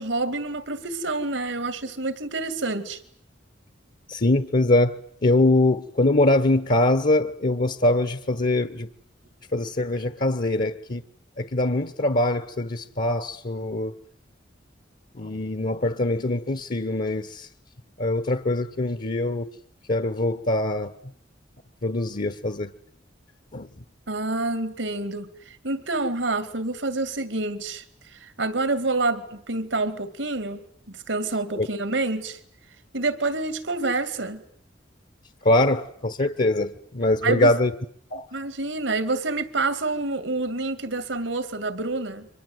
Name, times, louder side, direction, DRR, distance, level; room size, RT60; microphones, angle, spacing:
voice 1, 0.0-3.0 24.1-32.4 32.9-34.4 37.2-37.5 38.3-42.3, right 3 dB, 80° right, 2.4 m, -28 dB
voice 2, 4.1-8.9 9.5-11.0 11.4-13.9 15.2-17.5 18.0-19.5 19.9-20.9 21.8-22.7 23.5-23.7 31.5-31.7 35.4-37.7 38.1-38.3, left 2 dB, 45° left, 1.1 m, -23 dB
30.0 x 24.5 x 8.0 m
head